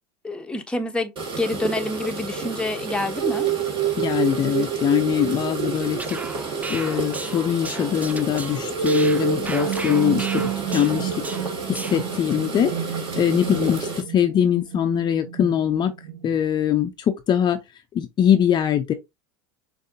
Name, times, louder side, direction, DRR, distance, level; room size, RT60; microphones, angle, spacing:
voice 1, 0.2-3.5, left 2 dB, 5° left, 0.9 m, -27 dB
sound 1, 1.2-14.0, right 3 dB, 40° right, 2.0 m, -32 dB
sound 2, 3.2-16.3, right 9 dB, 70° right, 0.6 m, -29 dB
voice 2, 4.0-6.0 6.7-11.4 11.7-15.9 16.2-17.6 17.9-18.9, left 9 dB, 35° left, 0.6 m, -22 dB
sound 3, 5.8-12.2, right 3 dB, 10° right, 0.4 m, -36 dB
6.3 x 2.7 x 2.6 m
hypercardioid pair, 95°, 13 cm